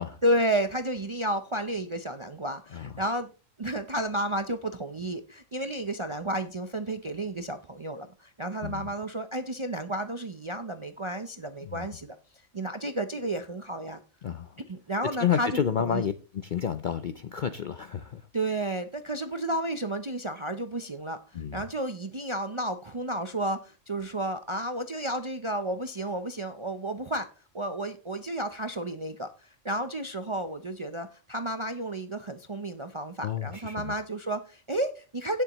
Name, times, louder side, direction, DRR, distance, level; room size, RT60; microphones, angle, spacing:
voice 1, 0.2-3.3 3.6-12.2 12.5-14.0 14.7-15.5 15.8-16.1 18.3-27.3 27.5-35.4, right 1 dB, 40° right, 0.4 m, -32 dB
voice 2, 14.2-14.5 15.2-18.2 21.3-21.6 33.2-33.9, left 8 dB, 60° left, 0.5 m, -30 dB
17.0 x 7.0 x 3.0 m
omnidirectional pair, 1.4 m